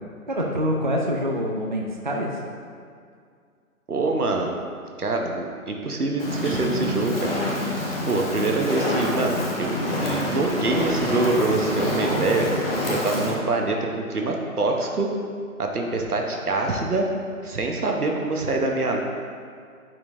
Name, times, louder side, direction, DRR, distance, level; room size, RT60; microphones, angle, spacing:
voice 1, 0.3-2.4, equal, 35° right, -1 dB, 0.4 m, -25 dB
voice 2, 3.9-4.5 5.0-7.4 8.0-12.5 12.9-15.1 15.6-17.1 17.4-19.0, right 3 dB, 80° right, 1 dB, 1.1 m, -25 dB
Fire, 6.2-13.3, left 1 dB, 40° left, 1.2 m, -26 dB
11.0 x 4.5 x 2.6 m, 2.2 s
figure-of-eight pair, 145°, 44 cm